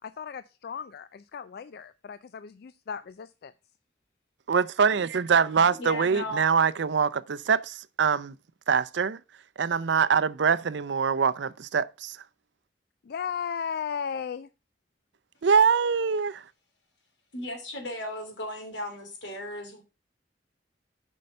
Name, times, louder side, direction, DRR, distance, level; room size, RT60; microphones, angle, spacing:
voice 1, 0.0-3.5 13.0-14.5, left 7 dB, 60° left, 0.4 m, -36 dB
voice 2, 4.5-8.4 8.7-9.2 9.6-12.2 15.4-16.4, right 6 dB, 75° right, 0.5 m, -24 dB
voice 3, 5.7-6.5 17.3-19.8, left 1 dB, 90° left, 2.9 m, -36 dB
7.6 x 5.5 x 5.4 m
head